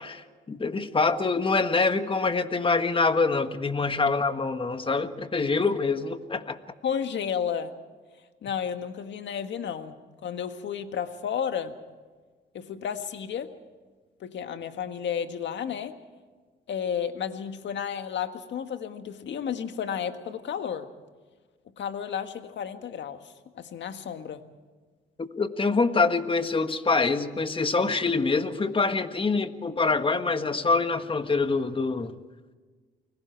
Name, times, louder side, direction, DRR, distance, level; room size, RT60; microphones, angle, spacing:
voice 1, 0.0-6.6 25.2-32.1, left 4 dB, 25° left, 9 dB, 1.6 m, -25 dB
voice 2, 6.8-7.7 8.4-11.8 12.5-13.5 14.2-15.9 16.7-20.9 21.8-24.4, left 8 dB, 65° left, 8 dB, 1.7 m, -32 dB
29.0 x 21.0 x 4.6 m, 1.4 s
cardioid pair, 90°, 20 cm